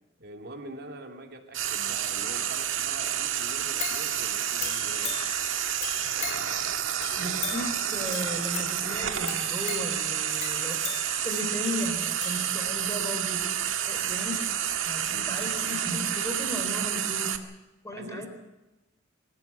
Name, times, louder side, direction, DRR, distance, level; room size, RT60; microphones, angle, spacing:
voice 1, 0.2-5.2 15.1-15.3 17.9-18.3, right 2 dB, 55° right, 3 dB, 2.7 m, -44 dB
Frying (food), 1.5-17.4, right 10 dB, 75° right, 1.7 m, -29 dB
sound 1, 3.8-13.0 13.5-13.6, left 8 dB, 35° left, 1.5 m, -40 dB
voice 2, 7.2-10.8 11.2-13.5 13.9-14.4 14.9-17.4 17.8-18.3, left 1 dB, 15° left, 5 dB, 3.7 m, -35 dB
24.0 x 15.0 x 8.1 m, 1.1 s
head